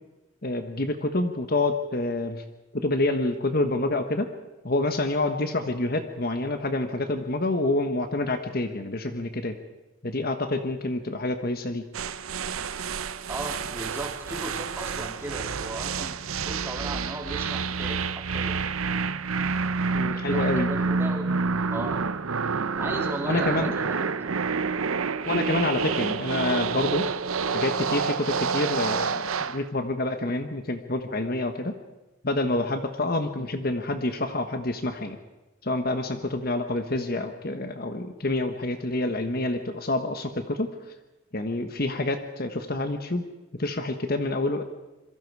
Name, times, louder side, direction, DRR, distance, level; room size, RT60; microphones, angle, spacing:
voice 1, 0.4-2.4 2.7-4.3 4.6-9.5 10.0-11.8 19.9-20.7 23.2-23.7 25.3-27.0 27.5-31.7 32.2-35.2 35.6-40.7 41.3-43.2 43.6-44.6, left 2 dB, 45° left, 7 dB, 1.3 m, -27 dB
sound 1, 11.9-29.6, right 5 dB, 85° right, 0.8 m, -28 dB
voice 2, 13.3-18.7 20.0-21.4 21.7-22.0 22.8-24.3, right 1 dB, 10° right, 0 dB, 3.4 m, -37 dB
27.0 x 23.0 x 4.8 m, 1.0 s
head